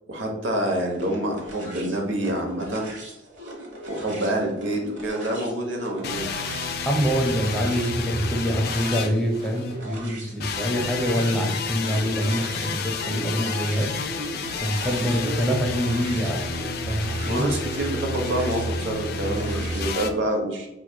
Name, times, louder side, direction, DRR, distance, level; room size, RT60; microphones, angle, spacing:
voice 1, 0.1-2.9 3.9-6.3 15.0-15.4 17.2-20.7, right 1 dB, 90° right, 2 dB, 0.9 m, -27 dB
sound 1, 0.9-19.9, right 1 dB, 70° right, 1.2 m, -41 dB
sound 2, 6.0-9.8 10.4-20.1, left 3 dB, 55° left, 0.4 m, -30 dB
voice 2, 6.8-13.9 14.6-16.4 16.9-17.5, equal, 5° left, 1 dB, 0.5 m, -25 dB
4.7 x 3.0 x 2.2 m, 0.98 s
head